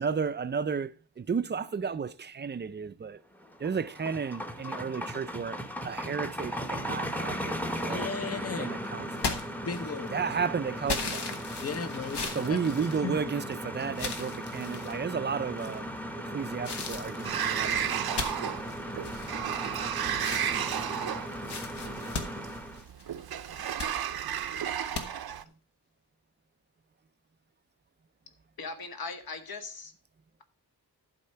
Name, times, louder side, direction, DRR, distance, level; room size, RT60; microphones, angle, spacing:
voice 1, 0.0-3.2 3.6-5.6 5.8-8.1 8.6-9.3 10.1-11.3 12.3-15.9 16.2-18.6 23.8-23.9, right 6 dB, 30° right, 0.4 m, -33 dB
sound 1, 3.4-22.8, equal, 5° left, 0.8 m, -37 dB
voice 2, 7.9-8.7 9.2-9.3 9.7-10.1 11.6-13.3, left 5 dB, 40° left, 0.7 m, -36 dB
Punching a face, 9.2-10.2 10.9-13.5 13.9-15.0 15.6-16.0 16.6-19.8 20.1-23.1 23.5-23.9 24.9-25.1, left 4 dB, 90° left, 1.3 m, -37 dB
Sliding door, 17.2-25.4, right 9 dB, 65° right, 0.6 m, -33 dB
voice 3, 28.6-29.9, left 4 dB, 65° left, 1.3 m, -39 dB
11.5 x 4.3 x 5.6 m
wide cardioid pair, 140°, 39 cm